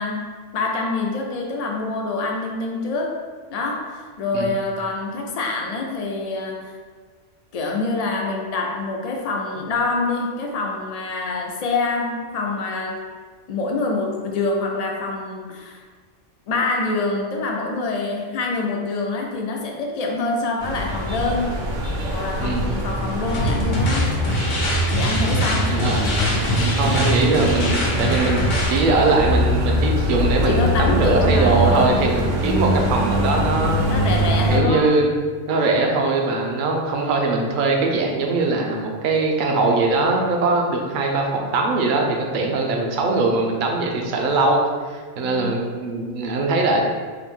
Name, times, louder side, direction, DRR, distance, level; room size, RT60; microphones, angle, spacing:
voice 1, 0.0-3.2 3.5-6.7 7.5-13.1 13.5-15.8 16.5-21.5 22.1-24.1 24.9-25.7 30.5-32.0 33.9-35.0 45.2-45.6, left 3 dB, 70° left, 0 dB, 0.3 m, -26 dB
sound 1, 20.6-34.6, equal, 85° right, 1.1 m, -23 dB
sound 2, 23.3-28.8, left 1 dB, 90° left, 1.2 m, -23 dB
voice 2, 25.7-26.0 26.8-33.8 34.5-35.1 35.5-44.6 44.9-46.8, right 3 dB, 55° right, 1 dB, 0.6 m, -21 dB
3.7 x 2.5 x 3.6 m, 1.6 s
omnidirectional pair, 1.2 m